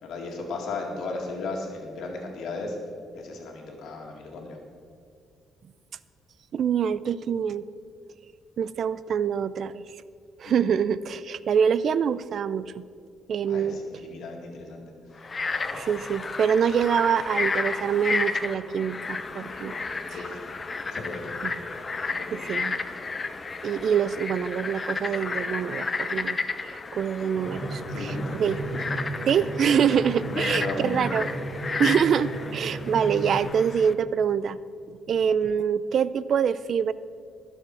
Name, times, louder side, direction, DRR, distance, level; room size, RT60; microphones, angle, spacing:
voice 1, 0.0-2.8 3.1-4.6 10.4-10.7 13.5-14.9 20.1-20.4 20.9-21.3 22.1-22.5 27.9-28.4 30.3-31.1, left 3 dB, 75° left, 1 dB, 2.1 m, -35 dB
voice 2, 6.5-7.6 8.6-9.8 10.4-12.8 13.3-13.8 15.7-19.7 20.1-20.2 21.4-21.5 22.3-22.8 23.6-26.4 26.6-28.6 29.3-31.3 31.8-34.6 34.9-36.9, right 7 dB, 60° right, 17 dB, 0.4 m, -25 dB
Frog, 15.2-33.9, left 4 dB, 35° left, 0.8 m, -32 dB
Drum, 27.3-33.4, right 1 dB, 85° right, 3.0 m, -34 dB
20.5 x 7.2 x 4.7 m, 2.3 s
cardioid pair, 90°, 0 cm